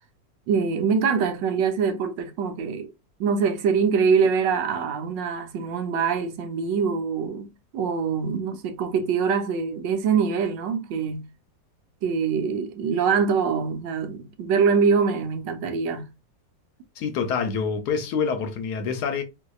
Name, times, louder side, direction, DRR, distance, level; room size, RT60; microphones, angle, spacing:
voice 1, 0.5-2.9 3.2-7.5 7.7-11.3 12.0-16.1, right 6 dB, 85° right, 1.4 m, -24 dB
voice 2, 17.0-19.2, left 6 dB, 70° left, 1.1 m, -26 dB
4.0 x 2.7 x 2.3 m
omnidirectional pair, 1.9 m